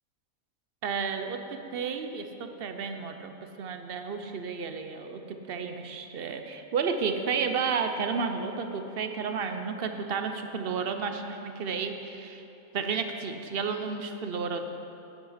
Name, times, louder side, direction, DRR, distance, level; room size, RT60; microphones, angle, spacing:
voice 1, 0.8-12.4 12.7-14.6, right 5 dB, 50° right, 6 dB, 0.8 m, -32 dB
9.8 x 8.6 x 5.7 m, 2.9 s
omnidirectional pair, 1.5 m